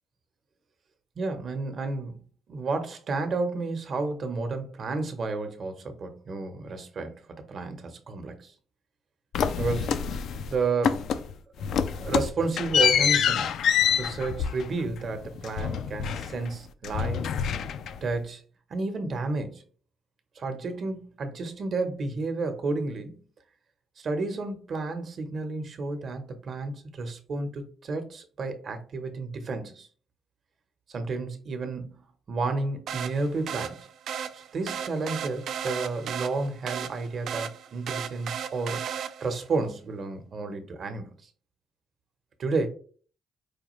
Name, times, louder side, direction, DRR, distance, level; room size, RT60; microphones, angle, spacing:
voice 1, 1.2-2.2 2.5-8.5 9.6-9.9 10.5-11.1 11.6-11.7 11.9-13.6 13.9-17.3 18.0-18.4 18.7-19.6 20.4-23.2 24.0-29.9 30.9-33.9 34.3-38.8 39.2-41.1 42.4-42.7, right 3 dB, 50° right, 0.9 m, -31 dB
sound 1, 9.3-10.5 10.8-11.3 11.6-16.6 16.8-18.1, left 8 dB, 70° left, 0.3 m, -26 dB
sound 2, 32.9-39.5, right 8 dB, 70° right, 0.4 m, -35 dB
4.8 x 2.4 x 3.1 m
cardioid pair, 90°, 0 cm